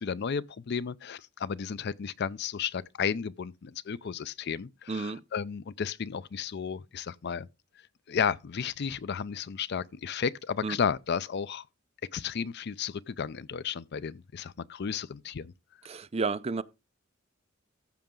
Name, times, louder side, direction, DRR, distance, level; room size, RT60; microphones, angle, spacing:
voice 1, 0.0-7.5 8.1-11.7 12.1-15.5, left 6 dB, 55° left, 0.5 m, -33 dB
voice 2, 4.9-5.2 10.6-10.8 15.8-16.6, right 4 dB, 30° right, 0.5 m, -31 dB
14.5 x 5.9 x 3.7 m
head